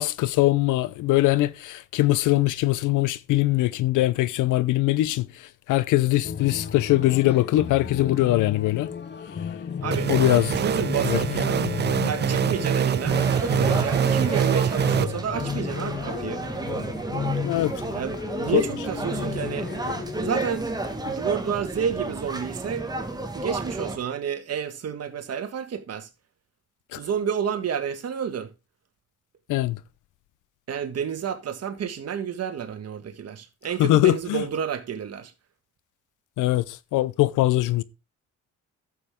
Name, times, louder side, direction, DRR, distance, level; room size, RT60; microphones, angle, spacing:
voice 1, 0.0-5.3 5.7-8.9 10.1-10.6 11.1-11.2 17.4-17.7 18.5-18.6 26.9-27.0 29.5-29.8 33.8-34.4 36.4-37.8, left 16 dB, 85° left, 0.7 m, -22 dB
sound 1, 6.2-20.4, left 7 dB, 35° left, 0.8 m, -33 dB
voice 2, 9.8-10.2 10.5-11.7 12.0-16.5 17.9-19.7 20.2-20.7 21.0-22.9 23.3-26.1 26.9-28.5 30.7-35.3, right 7 dB, 55° right, 1.7 m, -30 dB
sound 2, 9.9-15.0, right 8 dB, 35° right, 0.5 m, -24 dB
sound 3, 13.1-24.0, right 2 dB, 15° right, 1.7 m, -31 dB
11.0 x 7.5 x 3.7 m
cardioid pair, 90°, 30 cm